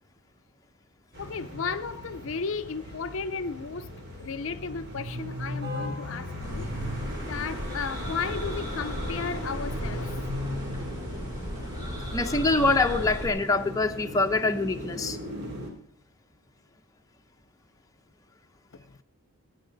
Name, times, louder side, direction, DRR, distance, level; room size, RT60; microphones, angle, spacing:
sound 1, 1.1-15.7, equal, 50° right, 3.1 m, -37 dB
voice 1, 1.2-3.9 4.2-6.9 7.2-10.2 18.7-19.0, left 5 dB, 65° left, 0.6 m, -34 dB
sound 2, 6.4-13.3, equal, 20° right, 4.7 m, -36 dB
voice 2, 12.1-15.2, left 3 dB, 15° left, 0.7 m, -24 dB
20.5 x 9.4 x 3.9 m
head